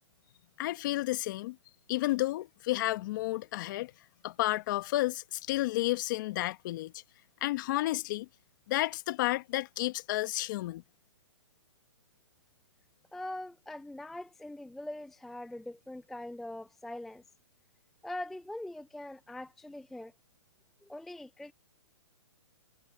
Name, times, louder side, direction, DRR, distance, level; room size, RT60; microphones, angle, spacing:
voice 1, 0.6-1.6 1.9-3.9 4.2-6.9 7.4-8.3 8.7-10.8, left 17 dB, 40° left, 1.4 m, -31 dB
voice 2, 13.1-17.2 18.0-20.1 20.8-21.5, left 1 dB, ahead, 0.4 m, -42 dB
hypercardioid pair, 150°, 16 cm